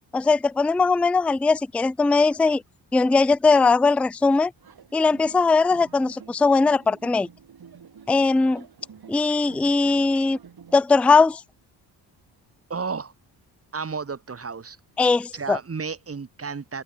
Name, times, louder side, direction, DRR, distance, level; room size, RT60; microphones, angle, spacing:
voice 1, 0.1-2.6 2.9-4.5 4.9-7.3 8.1-8.6 9.1-10.4 10.7-11.4 15.0-15.6, left 4 dB, 5° left, 0.4 m, -20 dB
sound 1, 4.6-10.8, right 7 dB, 50° right, 4.0 m, -49 dB
voice 2, 12.7-13.1 13.7-14.8 15.3-16.8, right 5 dB, 30° right, 1.9 m, -32 dB
open air
supercardioid pair, 50°, 47 cm